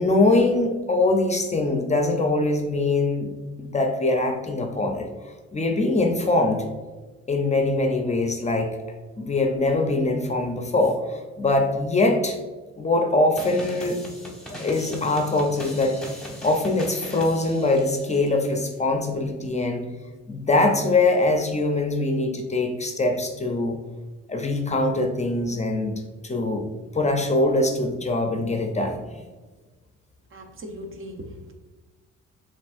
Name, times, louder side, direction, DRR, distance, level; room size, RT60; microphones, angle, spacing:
voice 1, 0.0-3.3 3.6-5.1 5.5-6.6 7.3-8.7 9.2-12.4 12.8-14.0 14.6-16.0 16.4-19.9 20.3-23.8 24.3-25.9 26.2-26.6 26.9-29.2, left 2 dB, 25° left, 4 dB, 0.5 m, -23 dB
sound 1, 13.4-18.3, equal, ahead, 1.0 m, -39 dB
voice 2, 30.3-31.5, equal, 45° right, 5 dB, 0.7 m, -39 dB
6.9 x 2.5 x 2.5 m, 1.3 s
cardioid pair, 90°, 30 cm